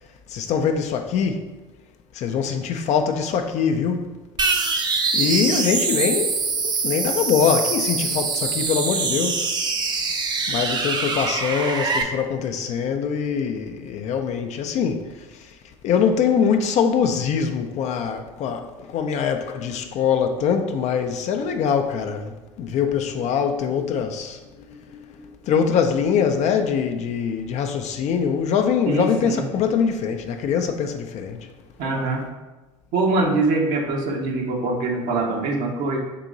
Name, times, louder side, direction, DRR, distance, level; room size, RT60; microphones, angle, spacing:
voice 1, 0.3-1.4 2.1-4.1 5.1-6.4 6.6-9.5 10.5-15.1 15.8-24.4 24.7-31.5, left 7 dB, 45° left, 0.4 m, -23 dB
sound 1, 4.4-12.0, right 4 dB, 30° right, 0.5 m, -24 dB
voice 2, 28.9-29.4 31.8-32.2 32.9-36.0, right 3 dB, 60° right, 0.7 m, -23 dB
3.7 x 2.9 x 3.7 m
hypercardioid pair, 70°, 16 cm